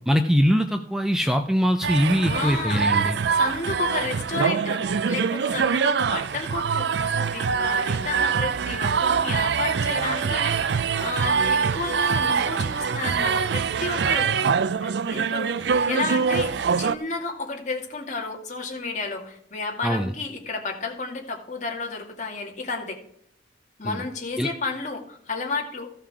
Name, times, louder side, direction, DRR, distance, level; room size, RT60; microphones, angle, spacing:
voice 1, 0.1-3.2 19.8-20.1 23.8-24.0 24.4-24.5, equal, 5° right, 6 dB, 0.5 m, -22 dB
sound 1, 1.8-16.9, right 6 dB, 65° right, 0.4 m, -24 dB
voice 2, 2.2-14.3 14.8-23.0 23.8-25.9, left 3 dB, 40° left, 1 dB, 2.3 m, -32 dB
15.0 x 5.7 x 4.9 m, 0.71 s
head